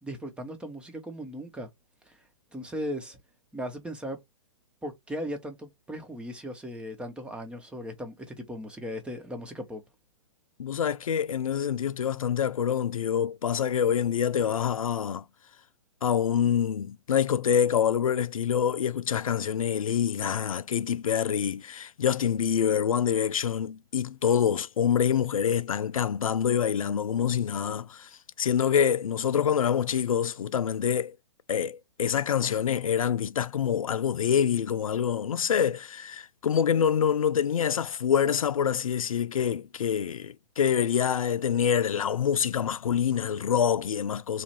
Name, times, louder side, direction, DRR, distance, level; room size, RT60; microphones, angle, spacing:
voice 1, 0.0-1.7 2.0-2.2 2.5-3.2 3.5-4.2 4.8-9.8, equal, 5° right, 0.8 m, -37 dB
voice 2, 10.6-15.2 16.0-28.1 28.4-31.2 31.5-44.4, left 8 dB, 85° left, 0.4 m, -26 dB
3.2 x 2.4 x 4.2 m
hypercardioid pair, 125°, 17 cm